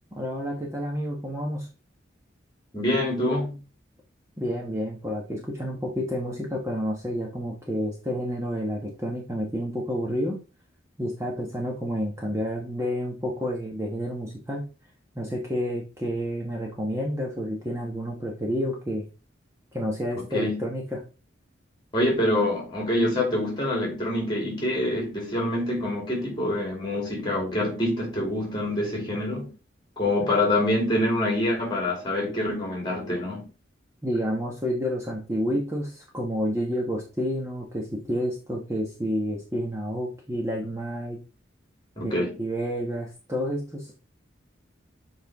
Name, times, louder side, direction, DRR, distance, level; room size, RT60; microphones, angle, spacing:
voice 1, 0.1-1.7 4.4-10.4 11.0-14.7 15.1-19.0 19.7-21.0 34.0-41.2 42.0-43.9, equal, 15° right, 1.2 m, -29 dB
voice 2, 2.7-3.6 20.3-20.6 21.9-29.5 30.0-33.5 42.0-42.4, left 1 dB, 25° left, 2.6 m, -26 dB
7.5 x 4.5 x 3.5 m
head